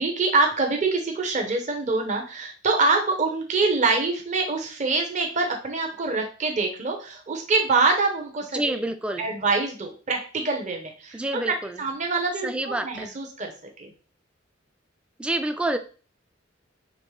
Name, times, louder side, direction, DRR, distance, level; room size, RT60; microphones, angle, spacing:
voice 1, 0.0-8.8 9.2-13.5 13.8-13.9, right 3 dB, 40° right, 2 dB, 0.8 m, -25 dB
voice 2, 8.5-9.2 11.1-11.8 12.4-13.1 15.2-15.8, right 1 dB, 5° right, 8 dB, 0.3 m, -28 dB
5.2 x 3.0 x 3.2 m, 0.37 s
head